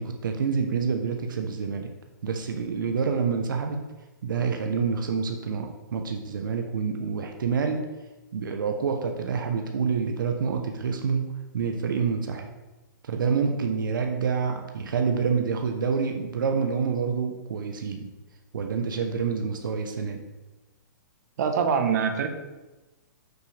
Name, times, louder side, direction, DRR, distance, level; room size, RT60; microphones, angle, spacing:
voice 1, 0.0-1.9 2.2-3.8 4.2-7.8 8.3-12.5 13.1-18.1 18.5-20.2, right 5 dB, 85° right, 4 dB, 0.8 m, -27 dB
voice 2, 21.4-22.3, right 6 dB, 55° right, 5 dB, 1.0 m, -24 dB
7.0 x 6.5 x 3.3 m, 1.1 s
hypercardioid pair, 150°, 11 cm